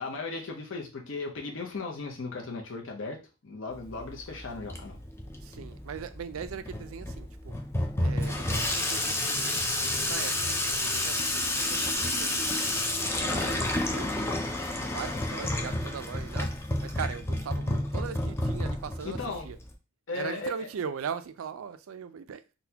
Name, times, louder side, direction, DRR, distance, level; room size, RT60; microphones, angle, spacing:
voice 1, 0.0-5.0 19.0-19.5 20.1-20.7, left 3 dB, 65° left, 0.7 m, -36 dB
Water tap faucet / Sink (filling or washing), 3.7-19.7, left 1 dB, 10° left, 0.3 m, -30 dB
voice 2, 5.4-7.5 8.0-12.6 13.2-14.5 14.8-16.5 16.8-19.6 20.1-22.4, right 7 dB, 90° right, 0.4 m, -40 dB
3.9 x 2.2 x 2.8 m
head